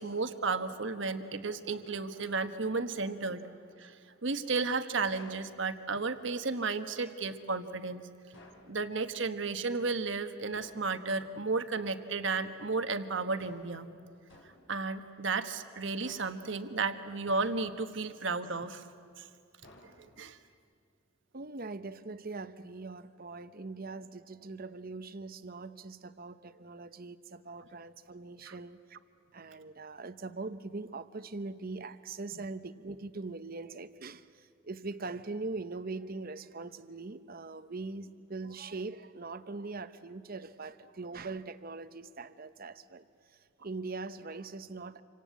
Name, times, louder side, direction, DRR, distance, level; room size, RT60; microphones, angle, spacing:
voice 1, 0.0-4.0 4.2-8.0 8.7-13.9 14.7-18.8 19.2-19.3 20.2-20.4 28.4-28.5, right 4 dB, 65° right, 9 dB, 1.3 m, -33 dB
sound 1, 5.1-5.5 8.3-8.7 10.5-10.9 13.4-13.8 14.3-14.7 16.0-16.5 17.3-17.9 19.6-20.3, left 2 dB, 70° left, 5.0 m, -55 dB
voice 2, 21.3-29.0 29.3-43.1 43.6-45.0, right 3 dB, 50° right, 12 dB, 0.9 m, -42 dB
27.5 x 25.5 x 8.4 m, 2.3 s
head